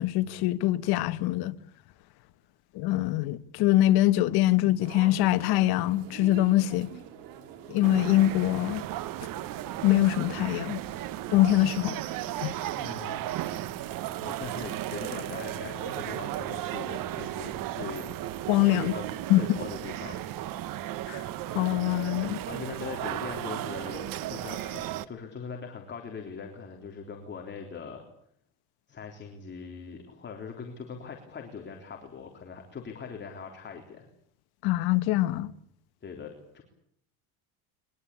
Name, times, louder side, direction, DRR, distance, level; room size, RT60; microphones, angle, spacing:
voice 1, 0.0-1.6 2.7-6.9 7.7-8.8 9.8-10.8 11.3-12.0 12.4-12.5 18.5-18.9 19.3-19.4 21.1-21.2 21.5-22.4 34.6-35.5, left 15 dB, 65° left, 1.3 m, -24 dB
sound 1, 4.8-20.0, right 9 dB, 75° right, 5.1 m, -47 dB
sound 2, 7.8-25.1, right 13 dB, 50° right, 1.3 m, -35 dB
voice 2, 12.8-13.3 14.2-18.1 18.7-19.1 19.3-20.3 22.4-28.1 28.9-34.1 36.0-36.6, left 6 dB, 25° left, 3.6 m, -41 dB
22.5 x 22.0 x 8.6 m
cardioid pair, 140°, 41 cm